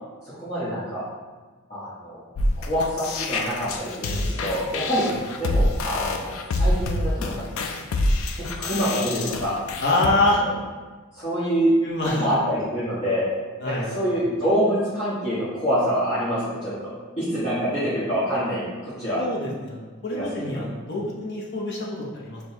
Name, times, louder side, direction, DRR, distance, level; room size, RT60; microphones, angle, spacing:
voice 1, 0.2-1.0 1.7-2.2 2.6-5.1 5.4-7.3 8.3-9.5 10.1-10.5 11.1-11.7 12.0-13.3 13.6-16.7 17.2-19.2 20.1-20.6, equal, 30° left, -13 dB, 1.0 m, -26 dB
sound 1, 2.4-10.1, left 1 dB, 70° left, 0.3 m, -26 dB
voice 2, 9.8-10.4 11.8-12.2 13.6-13.9 19.2-22.4, left 2 dB, 50° left, -4 dB, 0.7 m, -25 dB
6.1 x 2.2 x 2.8 m, 1.4 s
head